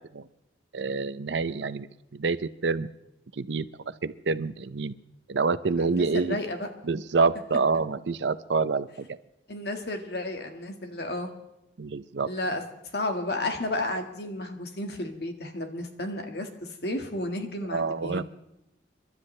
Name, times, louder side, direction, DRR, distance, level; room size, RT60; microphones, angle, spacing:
voice 1, 0.7-1.9 2.1-2.4 2.6-2.9 3.4-3.7 4.0-4.9 5.3-6.4 6.8-9.2 11.8-12.3 17.7-18.2, right 4 dB, 80° right, 14 dB, 0.6 m, -27 dB
voice 2, 5.8-6.7 9.5-11.3 12.2-12.7 12.9-18.2, left 1 dB, 60° left, 5 dB, 1.7 m, -32 dB
29.5 x 12.0 x 3.3 m, 0.88 s
head